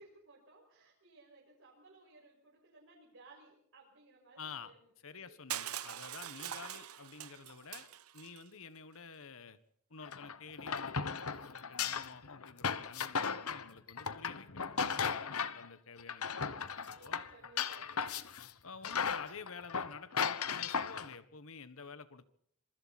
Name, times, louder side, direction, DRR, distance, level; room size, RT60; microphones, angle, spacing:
voice 1, 0.0-5.4 11.4-11.5 15.3-15.6 16.9-18.2, right 2 dB, 65° right, -3 dB, 5.9 m, -60 dB
voice 2, 4.4-4.7 5.0-7.9 8.1-9.6 9.9-14.7 14.9-16.7 17.0-17.2 18.6-22.2, left 5 dB, 70° left, 13 dB, 1.5 m, -50 dB
Crushing, 5.5-8.4, right 11 dB, 90° right, 1.1 m, -43 dB
sound 1, 10.0-15.7 16.0-18.5 18.8-21.1, left 6 dB, 85° left, 1.2 m, -36 dB
26.5 x 24.0 x 4.3 m, 0.68 s
head